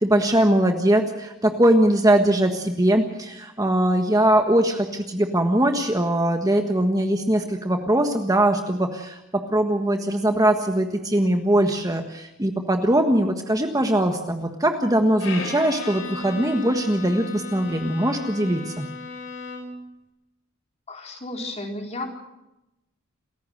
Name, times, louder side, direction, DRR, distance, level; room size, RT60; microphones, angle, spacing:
voice 1, 0.0-18.9, right 1 dB, 15° right, 5 dB, 1.5 m, -21 dB
Bowed string instrument, 15.2-19.9, left 3 dB, 65° left, 6.9 m, -35 dB
voice 2, 20.9-22.1, left 2 dB, 30° left, 2 dB, 4.3 m, -33 dB
28.0 x 15.5 x 6.5 m, 0.92 s
head